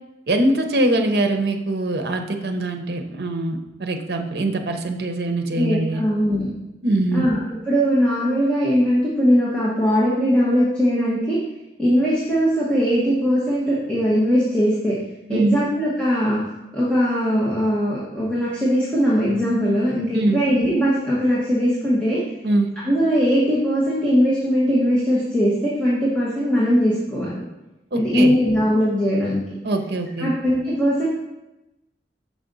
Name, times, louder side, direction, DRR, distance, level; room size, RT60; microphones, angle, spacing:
voice 1, 0.3-6.0 6.8-7.3 15.3-15.6 20.1-20.4 22.4-22.7 27.9-28.3 29.6-30.3, right 1 dB, 65° right, 5 dB, 0.7 m, -22 dB
voice 2, 5.5-6.5 7.1-11.4 11.8-15.0 15.3-16.4 16.7-22.2 22.9-27.4 27.9-29.4 30.2-31.1, equal, 5° left, -8 dB, 1.0 m, -20 dB
6.3 x 5.0 x 3.9 m, 0.97 s
head